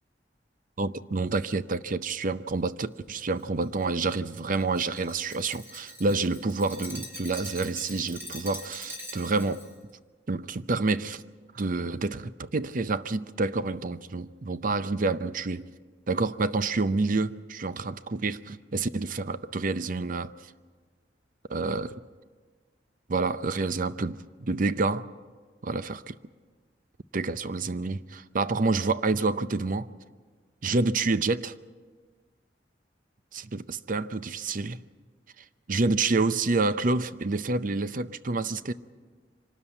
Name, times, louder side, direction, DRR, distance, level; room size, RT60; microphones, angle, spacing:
voice 1, 0.8-9.6 10.3-11.2 11.5-15.7 16.1-20.3 21.5-22.0 23.1-25.1 25.6-26.2 27.1-29.9 30.6-31.5 33.3-34.8 35.7-38.7, right 3 dB, 50° right, 0.6 m, -28 dB
Glass, 3.4-9.7, equal, 15° right, 4.5 m, -43 dB
25.0 x 13.0 x 9.1 m
head